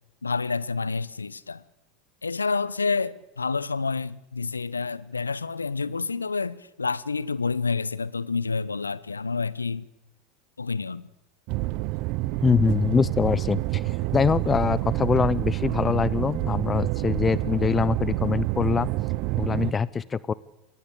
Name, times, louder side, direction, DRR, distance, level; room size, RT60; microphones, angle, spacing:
voice 1, 0.2-1.6 2.2-9.8 10.6-11.1, left 4 dB, 85° left, 1.0 m, -28 dB
sound 1, 11.5-19.7, right 19 dB, 55° right, 0.9 m, -28 dB
voice 2, 12.4-18.9 19.4-20.3, left 5 dB, 25° left, 0.9 m, -24 dB
29.0 x 22.0 x 8.6 m
figure-of-eight pair, 80°, 0 cm